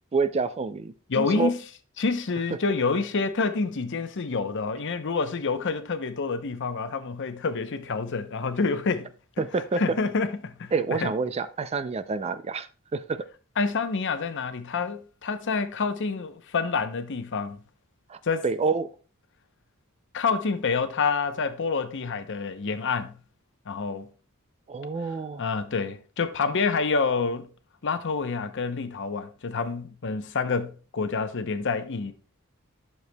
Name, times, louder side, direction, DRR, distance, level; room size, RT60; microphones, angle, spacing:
voice 1, 0.1-1.5 9.4-9.8 10.7-13.3 18.1-18.9 24.7-25.4, right 4 dB, 30° right, 0.4 m, -28 dB
voice 2, 1.1-1.6 2.0-9.1 9.8-11.1 13.6-17.6 18.2-18.4 20.1-23.2 23.7-24.1 25.4-27.5 27.8-32.1, left 4 dB, 60° left, 0.7 m, -28 dB
11.0 x 6.7 x 2.2 m
head